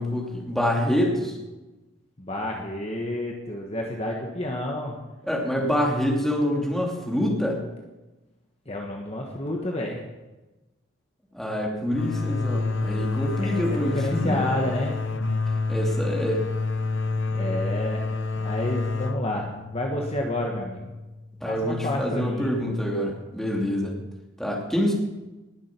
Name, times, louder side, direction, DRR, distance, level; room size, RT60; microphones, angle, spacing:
voice 1, 0.0-1.4 5.3-7.6 11.3-14.4 15.7-16.4 21.4-23.9 24.4-24.9, equal, ahead, -2 dB, 2.6 m, -26 dB
voice 2, 2.2-5.0 8.7-10.0 13.4-14.9 17.3-18.1 18.4-20.9 21.4-22.5, left 1 dB, 30° left, 0 dB, 1.4 m, -30 dB
sound 1, 11.9-21.4, left 3 dB, 55° left, 0.9 m, -29 dB
19.5 x 7.6 x 6.0 m, 1.1 s
head